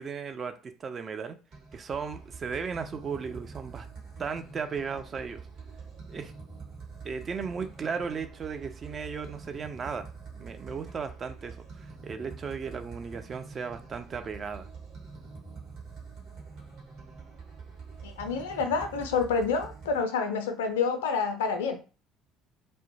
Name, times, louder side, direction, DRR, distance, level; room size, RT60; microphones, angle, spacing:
voice 1, 0.0-1.4 1.7-3.9 4.2-5.4 6.1-6.3 7.0-10.1 10.3-14.7, right 5 dB, 35° right, 0.3 m, -36 dB
sound 1, 1.5-20.0, right 4 dB, 50° right, 1.1 m, -45 dB
voice 2, 18.0-21.8, left 5 dB, 70° left, 0.3 m, -28 dB
2.1 x 2.0 x 2.9 m
figure-of-eight pair, 55°, 0 cm